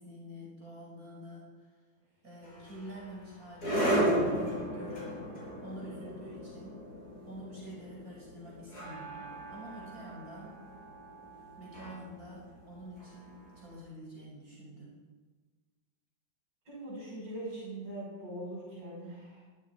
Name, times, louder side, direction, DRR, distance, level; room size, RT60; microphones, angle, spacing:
voice 1, 0.0-1.7 2.2-4.0 4.7-5.2 5.6-6.8 7.3-10.5 11.6-14.9, equal, 45° right, -5 dB, 6.2 m, -47 dB
sound 1, 2.4-13.6, right 1 dB, 50° left, 6.7 m, -35 dB
voice 2, 16.7-19.4, right 1 dB, 65° right, -6 dB, 7.0 m, -41 dB
23.0 x 13.0 x 4.8 m, 1.4 s
omnidirectional pair, 2.1 m